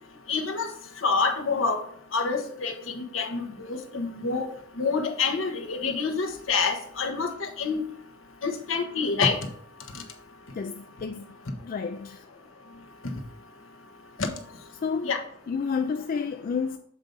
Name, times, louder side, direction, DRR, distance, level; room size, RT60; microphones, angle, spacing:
voice 1, 0.3-0.7 1.0-1.8 2.1-4.5 4.8-7.8 8.4-9.4 14.2-14.3 15.0-15.2, left 4 dB, 70° left, 1.1 m, -27 dB
voice 2, 10.5-11.3 11.6-12.3 14.8-15.1 15.5-16.8, left 5 dB, 45° left, 0.3 m, -30 dB
7.2 x 4.0 x 5.2 m
head